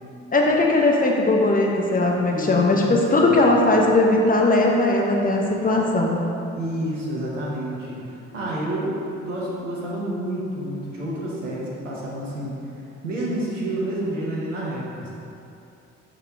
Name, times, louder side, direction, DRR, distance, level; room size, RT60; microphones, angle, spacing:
voice 1, 0.3-6.2, left 2 dB, 25° left, 0 dB, 1.1 m, -19 dB
voice 2, 2.2-2.9 3.2-3.4 6.5-12.6 13.0-15.1, right 1 dB, 85° right, -5 dB, 1.0 m, -29 dB
5.4 x 5.4 x 4.8 m, 2.7 s
figure-of-eight pair, 40°, 36 cm